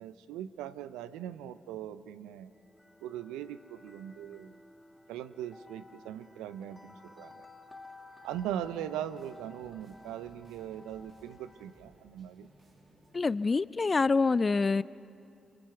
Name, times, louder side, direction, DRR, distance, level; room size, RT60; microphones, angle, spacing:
voice 1, 0.0-2.5 3.0-4.6 5.1-7.4 8.2-12.5, right 10 dB, 85° right, 13 dB, 0.6 m, -40 dB
sound 1, 2.5-11.9, left 2 dB, 15° left, 1.9 m, -55 dB
sound 2, 8.2-13.2, right 1 dB, 55° right, 7.5 m, -62 dB
voice 2, 13.1-14.8, left 4 dB, 40° left, 19 dB, 0.4 m, -26 dB
29.0 x 24.5 x 4.6 m, 2.6 s
hypercardioid pair, 40°, 0 cm